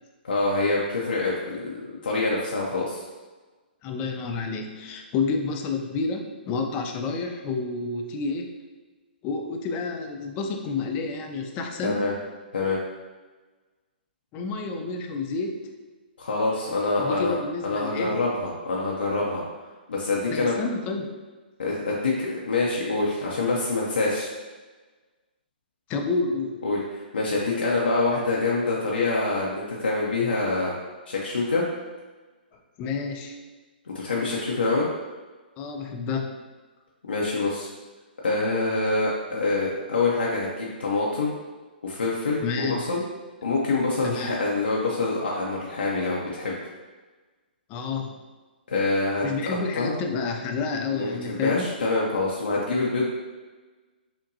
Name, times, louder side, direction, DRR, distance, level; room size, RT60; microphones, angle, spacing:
voice 1, 0.2-3.0 11.8-12.1 12.5-12.8 16.2-17.3 17.6-19.4 19.9-20.6 21.6-24.3 26.6-30.7 31.1-31.7 33.9-34.9 37.1-37.7 38.2-41.3 41.8-43.0 43.4-46.6 48.7-49.3 49.7-50.0 50.9-53.1, left 3 dB, 75° left, -5 dB, 0.6 m, -25 dB
voice 2, 3.8-8.5 9.2-12.0 14.3-15.7 17.0-18.1 20.3-21.1 25.9-26.7 32.8-33.4 35.6-36.3 42.4-42.8 44.0-44.4 47.7-48.2 49.2-51.7, left 4 dB, 25° left, 3 dB, 0.5 m, -29 dB
5.6 x 2.2 x 2.7 m, 1.3 s
figure-of-eight pair, 125°, 6 cm